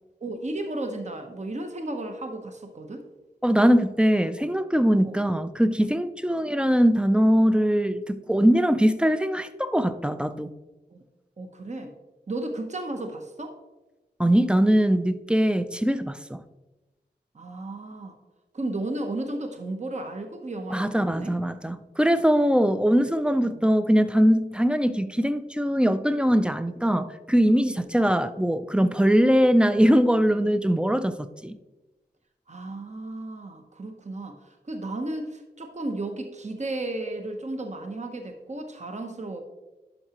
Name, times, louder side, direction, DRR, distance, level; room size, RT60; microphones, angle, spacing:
voice 1, 0.2-3.0 5.0-5.2 10.9-11.0 11.4-11.9 12.3-13.5 17.3-18.2 18.5-21.3 23.4-23.6 27.7-27.8 32.5-39.4, right 2 dB, 45° right, 0.8 m, -34 dB
voice 2, 3.4-10.5 14.2-16.4 20.7-31.6, equal, 5° right, 0.4 m, -21 dB
11.0 x 5.6 x 2.9 m
wide cardioid pair, 75°, 17 cm